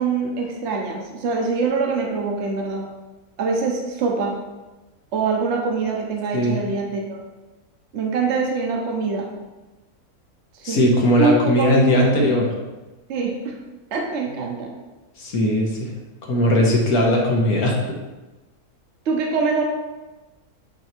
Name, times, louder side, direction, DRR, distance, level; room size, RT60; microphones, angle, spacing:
voice 1, 0.0-2.9 3.4-4.4 5.1-7.2 7.9-9.3 10.6-10.9 11.2-12.3 13.1-13.6 13.9-14.7 19.1-19.6, right 4 dB, 50° right, 0 dB, 1.1 m, -24 dB
voice 2, 10.6-12.5 15.2-15.9 16.2-18.0, left 1 dB, 75° left, -1 dB, 1.7 m, -19 dB
9.0 x 3.0 x 4.4 m, 1.1 s
omnidirectional pair, 1.6 m